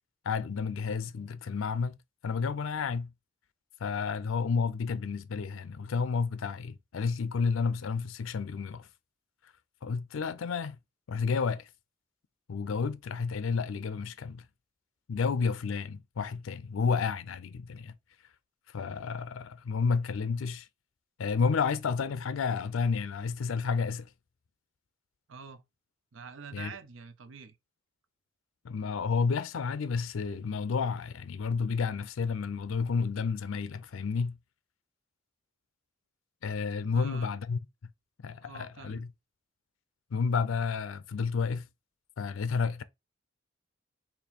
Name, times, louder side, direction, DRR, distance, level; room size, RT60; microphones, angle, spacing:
voice 1, 0.2-2.0 2.2-3.1 3.8-8.9 9.8-10.8 11.1-11.7 12.5-14.5 15.1-17.9 18.7-20.7 21.2-24.1 26.5-26.8 28.6-34.4 36.4-37.6 38.2-39.1 40.1-41.7 42.2-42.8, left 5 dB, 90° left, 0.4 m, -31 dB
voice 2, 25.3-25.6 26.1-27.6 36.9-37.3 38.4-39.0, right 5 dB, 80° right, 0.6 m, -46 dB
4.2 x 3.0 x 4.1 m
head